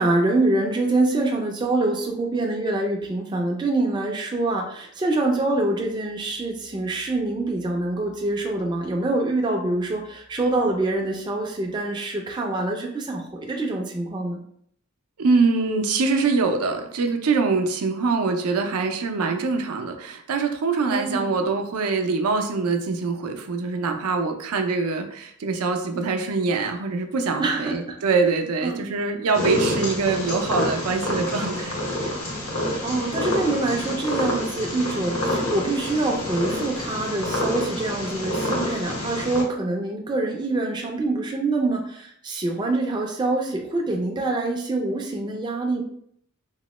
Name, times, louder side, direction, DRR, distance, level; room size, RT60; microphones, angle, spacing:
voice 1, 0.0-14.4 20.9-21.3 27.4-28.0 28.6-28.8 32.8-45.8, right 2 dB, 20° right, 1 dB, 0.3 m, -25 dB
voice 2, 15.2-31.8, right 4 dB, 85° right, 5 dB, 0.4 m, -24 dB
Purr, 29.3-39.4, left 1 dB, 80° left, 0.8 m, -27 dB
3.0 x 2.1 x 3.0 m, 0.66 s
head